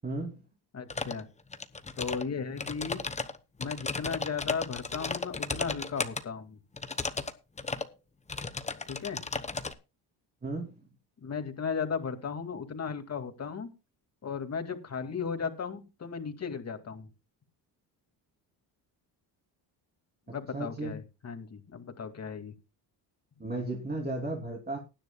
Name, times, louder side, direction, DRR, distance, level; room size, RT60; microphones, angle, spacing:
voice 1, 0.0-0.4 10.4-10.8 20.3-21.0 23.4-24.8, right 2 dB, 20° right, -1 dB, 3.1 m, -35 dB
voice 2, 0.7-1.3 2.0-3.0 3.6-6.6 8.9-9.2 11.2-13.7 14.2-17.1 20.3-22.5, left 6 dB, 35° left, 7 dB, 2.3 m, -36 dB
sound 1, 0.9-1.2 1.5-2.2 2.6-6.2 6.8-7.3 7.6-7.9 8.3-9.7, left 3 dB, 15° left, 1.0 m, -34 dB
19.5 x 10.5 x 2.3 m, 0.28 s
cardioid pair, 110°, 43 cm